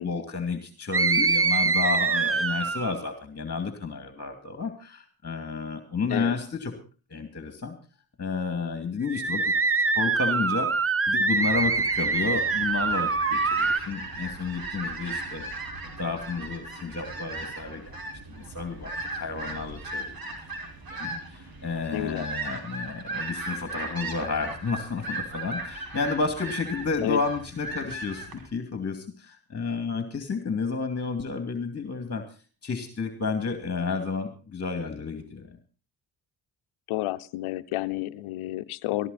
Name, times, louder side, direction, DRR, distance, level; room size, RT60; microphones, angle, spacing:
voice 1, 0.0-6.7 7.1-7.8 8.2-9.5 10.0-15.4 16.0-18.0 18.3-20.1 20.9-32.2 32.6-35.5, left 4 dB, 30° left, 6 dB, 2.6 m, -31 dB
sound 1, 0.9-3.0 9.0-13.8, right 4 dB, 25° right, 1.3 m, -24 dB
sound 2, 11.4-28.5, right 2 dB, 45° right, 5.2 m, -37 dB
voice 2, 21.9-22.3 27.0-27.2 36.9-39.1, left 16 dB, 85° left, 11 dB, 0.8 m, -30 dB
15.5 x 14.5 x 4.2 m, 0.37 s
supercardioid pair, 60°, 49 cm